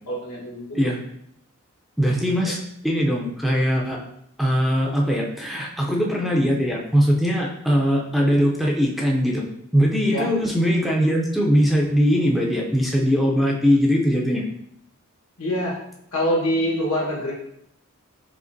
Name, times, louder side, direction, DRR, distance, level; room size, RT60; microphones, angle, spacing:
voice 1, 0.1-0.9 10.1-10.3 15.4-15.8 16.1-17.3, equal, 80° left, -4 dB, 1.3 m, -25 dB
voice 2, 2.0-4.0 4.4-9.4 9.7-14.4, equal, ahead, -2 dB, 0.4 m, -21 dB
5.0 x 3.2 x 2.6 m, 0.76 s
head